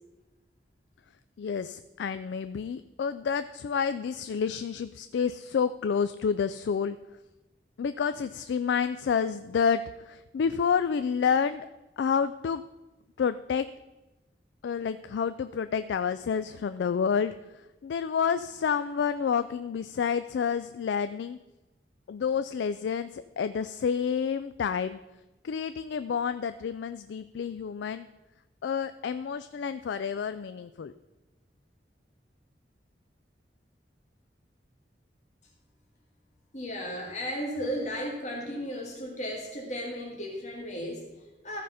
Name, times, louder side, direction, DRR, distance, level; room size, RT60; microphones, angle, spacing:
voice 1, 1.4-7.0 7.8-11.7 12.0-12.6 13.2-13.7 14.6-17.3 17.8-21.4 22.1-25.0 25.4-28.1 28.6-30.9, left 6 dB, 85° left, 12 dB, 0.3 m, -29 dB
voice 2, 36.5-41.6, equal, 40° left, -1 dB, 1.6 m, -35 dB
14.0 x 5.0 x 5.5 m, 1.1 s
head